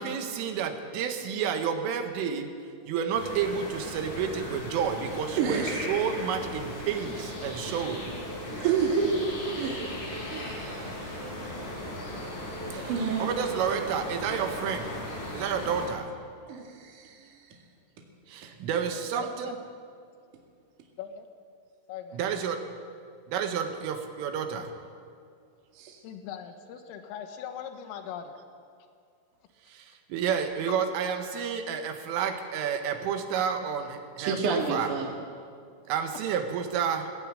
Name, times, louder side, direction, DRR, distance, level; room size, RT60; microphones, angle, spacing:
voice 1, 0.0-2.5 2.9-8.1 12.7-14.9 15.3-16.1 18.3-19.6 22.1-22.6 23.3-24.7 29.7-34.9 35.9-37.2, right 7 dB, 80° right, 3.9 m, -30 dB
sound 1, 3.1-15.9, left 1 dB, 40° left, 5.7 m, -37 dB
voice 2, 5.4-5.8 8.6-9.1 9.6-9.9 10.3-11.5 12.7-13.3 16.5-17.4 25.7-26.0 34.2-35.1, right 6 dB, 50° right, 2.8 m, -30 dB
voice 3, 19.1-19.5 21.0-21.3 21.9-22.2 26.0-28.4, left 8 dB, 85° left, 3.8 m, -40 dB
20.5 x 15.5 x 9.0 m
omnidirectional pair, 6.0 m